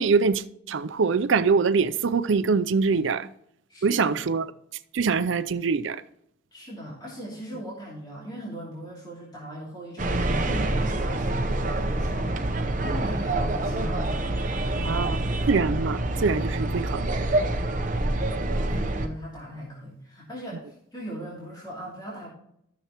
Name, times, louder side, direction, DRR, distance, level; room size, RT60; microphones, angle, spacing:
voice 1, 0.0-3.3 3.8-4.4 4.9-6.0 14.9-15.2 15.5-17.0, right 5 dB, 70° right, 0.5 m, -24 dB
voice 2, 3.7-4.2 6.5-15.3 18.0-22.3, equal, 20° left, 2.8 m, -39 dB
sound 1, 10.0-19.1, right 2 dB, 40° right, 0.8 m, -26 dB
13.0 x 6.8 x 2.9 m
head